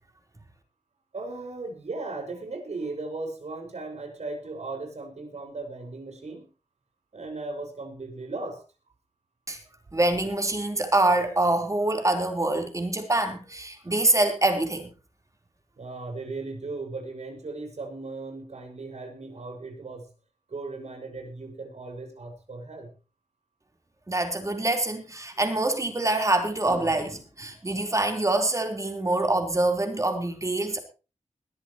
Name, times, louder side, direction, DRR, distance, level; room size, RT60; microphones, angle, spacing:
voice 1, 1.1-6.5 7.1-8.6 15.8-20.1 20.5-22.9, right 3 dB, 65° right, 5.8 m, -37 dB
voice 2, 9.9-14.9 24.1-30.8, right 2 dB, 25° right, 4.2 m, -25 dB
20.5 x 14.0 x 3.1 m
wide cardioid pair, 110°, 12 cm